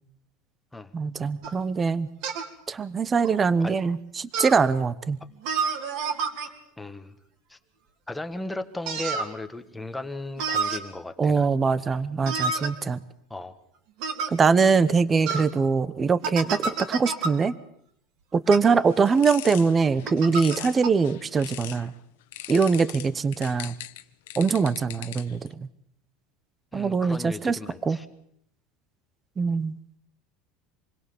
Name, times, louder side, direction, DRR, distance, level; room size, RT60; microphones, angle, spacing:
voice 1, 0.9-2.1 2.7-5.2 11.2-13.0 14.3-17.5 18.3-21.9 22.5-23.7 24.4-25.7 26.7-27.6 27.9-28.0 29.4-29.8, right 5 dB, 15° right, 16 dB, 0.9 m, -23 dB
sound 1, 1.4-1.6 2.2-2.5 3.2-3.3 4.3-4.6 5.4-6.5 8.9-9.3 10.4-10.8 12.2-12.7 14.0-14.3 15.3-15.5 16.2-17.3 18.5-18.6 20.0-20.6 20.8-20.9, right 5 dB, 55° right, 3.3 m, -28 dB
voice 2, 6.8-7.1 7.5-7.6 8.1-11.5 13.3-13.5 26.7-28.1, left 2 dB, 5° left, 9 dB, 1.4 m, -36 dB
sound 2, 18.9-21.9 22.3-25.5, left 15 dB, 85° left, 1.4 m, -40 dB
27.5 x 21.0 x 7.1 m, 0.70 s
cardioid pair, 170°, 0 cm